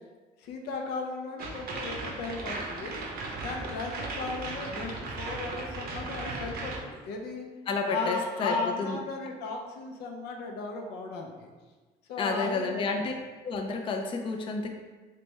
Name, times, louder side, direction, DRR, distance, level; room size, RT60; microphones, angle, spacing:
voice 1, 0.4-3.0 3.4-7.5 7.9-11.5 12.1-13.1, left 3 dB, 80° left, 2 dB, 0.6 m, -36 dB
sound 1, 1.4-6.8, right 3 dB, 65° right, 0.7 m, -36 dB
voice 2, 7.7-9.0 12.2-13.1 13.4-14.7, left 4 dB, 30° left, 3 dB, 0.4 m, -30 dB
3.3 x 3.0 x 3.2 m, 1.3 s
cardioid pair, 110°, 17 cm